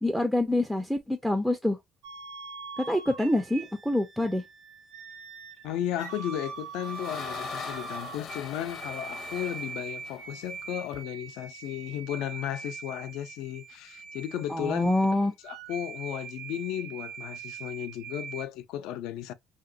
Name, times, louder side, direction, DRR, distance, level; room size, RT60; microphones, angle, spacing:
voice 1, 0.0-1.8 2.9-4.4 14.5-15.3, left 1 dB, ahead, 0.3 m, -26 dB
sound 1, 2.0-18.4, right 5 dB, 80° right, 0.7 m, -42 dB
voice 2, 5.6-14.9 15.4-19.3, left 11 dB, 80° left, 0.4 m, -34 dB
sound 2, 6.3-11.0, left 7 dB, 45° left, 0.7 m, -42 dB
2.9 x 2.8 x 2.5 m
cardioid pair, 165°, 0 cm